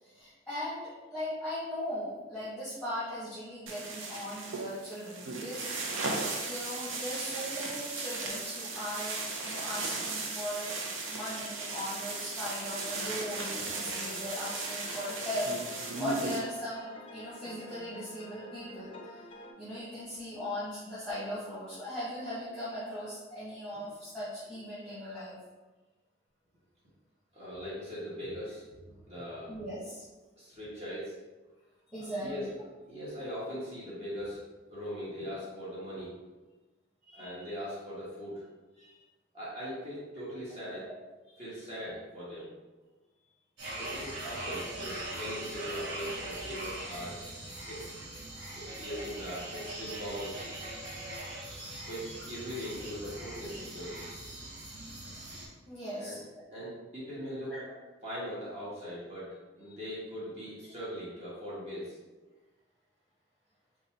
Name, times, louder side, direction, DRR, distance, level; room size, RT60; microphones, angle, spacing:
voice 1, 0.0-6.1 6.5-10.8 11.1-19.2 19.6-25.4 29.5-30.0 31.9-32.6 37.0-37.5 38.8-38.9 41.3-41.4 48.3-48.5 50.8-51.7 55.7-56.4 57.4-57.7 59.7-59.8, left 1 dB, 5° left, -12 dB, 1.1 m, -39 dB
sound 1, 3.7-16.4, right 3 dB, 85° right, 0.6 m, -36 dB
sound 2, 13.0-19.5, left 1 dB, 30° left, 0.5 m, -48 dB
voice 2, 27.3-28.7 29.1-29.5 30.4-31.2 31.9-32.4 32.9-34.4 34.7-36.1 37.1-38.4 39.3-40.9 41.4-42.5 43.7-47.2 47.6-47.9 48.5-50.4 51.9-54.1 56.0-56.2 56.5-57.5 58.0-62.0, equal, 35° right, -9 dB, 1.1 m, -40 dB
sound 3, 43.6-55.5, right 1 dB, 60° right, 0.9 m, -41 dB
3.9 x 2.4 x 4.1 m, 1.2 s
head